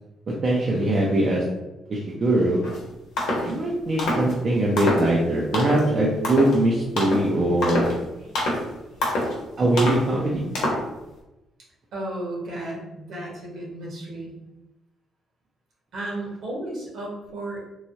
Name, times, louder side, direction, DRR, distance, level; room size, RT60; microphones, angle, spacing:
voice 1, 0.3-1.4 1.9-2.6 3.4-7.9 9.6-10.5, right 1 dB, 45° right, -4 dB, 0.6 m, -22 dB
sound 1, 2.6-2.8 3.2-3.5 4.0-4.3 4.8-5.1 5.5-5.9 6.2-6.6 7.0-7.3 7.6-8.0 8.3-8.6 9.0-9.4 9.8-10.0 10.5-10.9, left 1 dB, 85° left, 0.9 m, -25 dB
voice 2, 8.1-9.2 11.9-14.3 15.9-17.7, right 1 dB, 70° right, -4 dB, 1.2 m, -34 dB
3.1 x 2.3 x 2.7 m, 0.98 s
cardioid pair, 90°, 0 cm